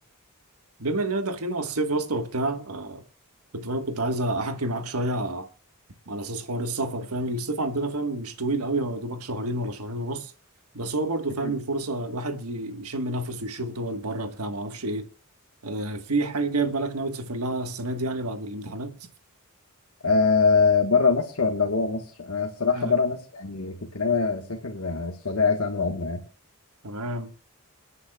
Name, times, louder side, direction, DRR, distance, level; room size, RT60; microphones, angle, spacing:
voice 1, 0.8-3.0 3.5-5.5 6.1-10.3 10.7-15.1 15.6-18.9 22.7-23.0 26.8-27.3, right 2 dB, 85° right, 1.5 m, -29 dB
voice 2, 20.0-26.2, left 4 dB, 75° left, 1.5 m, -23 dB
28.5 x 9.7 x 2.4 m
head